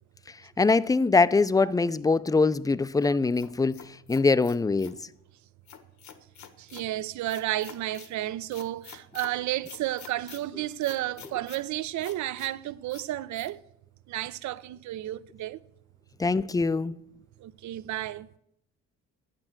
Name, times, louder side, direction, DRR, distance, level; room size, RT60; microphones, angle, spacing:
voice 1, 0.6-3.8 4.1-4.9 16.2-16.9, left 3 dB, 10° left, 0.4 m, -23 dB
Cắt Hành Lá, 3.0-5.0 5.7-6.9 7.3-8.1 8.5-9.3 9.6-10.4 10.8-11.6 12.0-12.5 12.9-13.1 13.3-13.5, left 8 dB, 70° left, 1.3 m, -47 dB
voice 2, 6.6-13.6 14.1-15.6 17.4-18.3, right 14 dB, 70° right, 0.6 m, -32 dB
10.0 x 8.8 x 7.3 m
cardioid pair, 90°, 30 cm